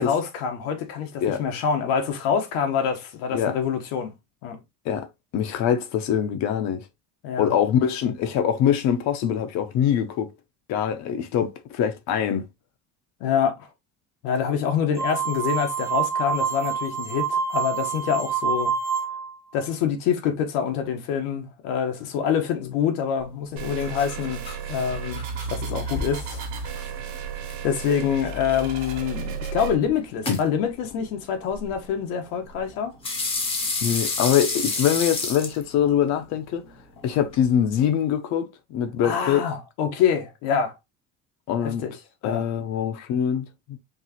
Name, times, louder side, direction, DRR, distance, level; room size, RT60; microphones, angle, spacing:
voice 1, 0.0-4.1 4.4-4.6 7.2-7.5 13.2-13.7 14.2-18.7 19.5-26.4 27.1-27.2 27.6-33.0 39.0-40.7 41.6-41.9 42.2-42.4, left 7 dB, 75° left, 1.4 m, -26 dB
voice 2, 5.3-6.8 7.4-10.3 10.7-12.5 30.3-30.4 33.8-36.6 37.0-39.5 41.5-41.8 42.2-43.8, left 9 dB, 50° left, 0.9 m, -23 dB
sound 1, 15.0-19.4, right 6 dB, 10° right, 0.5 m, -27 dB
sound 2, 23.2-37.4, left 3 dB, 15° left, 0.9 m, -34 dB
sound 3, 23.6-29.7, right 6 dB, 55° right, 1.4 m, -33 dB
4.7 x 3.3 x 3.0 m
cardioid pair, 175°, 34 cm